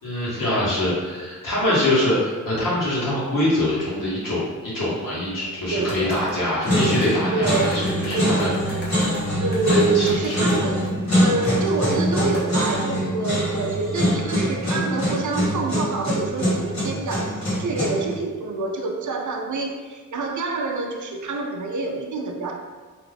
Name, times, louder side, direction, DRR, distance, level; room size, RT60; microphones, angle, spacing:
voice 1, 0.0-8.5 9.7-10.5, left 1 dB, 80° left, -8 dB, 1.3 m, -24 dB
voice 2, 5.7-6.3 7.3-8.4 9.4-10.9 11.2-22.5, right 4 dB, 65° right, 2 dB, 0.5 m, -27 dB
sound 1, 5.8-7.1 7.5-10.9 11.4-11.6 11.9-12.0 12.3-12.4, left 1 dB, 30° left, 0.8 m, -39 dB
sound 2, 6.0-6.3 6.7-18.1, equal, 55° left, 1.4 m, -24 dB
2.8 x 2.4 x 3.4 m, 1.4 s
wide cardioid pair, 110°, 32 cm